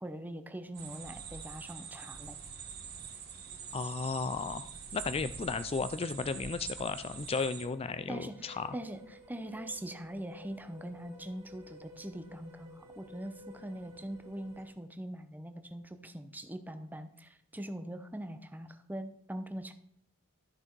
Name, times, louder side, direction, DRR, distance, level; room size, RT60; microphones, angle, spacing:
voice 1, 0.0-2.4 8.1-19.7, right 1 dB, 10° right, 8 dB, 0.8 m, -42 dB
sound 1, 0.7-7.7, right 6 dB, 45° right, 1.6 m, -45 dB
voice 2, 3.7-8.7, left 4 dB, 25° left, 13 dB, 0.4 m, -34 dB
sound 2, 7.6-14.7, left 1 dB, 25° right, 2.4 m, -54 dB
13.0 x 6.1 x 4.6 m, 0.67 s
head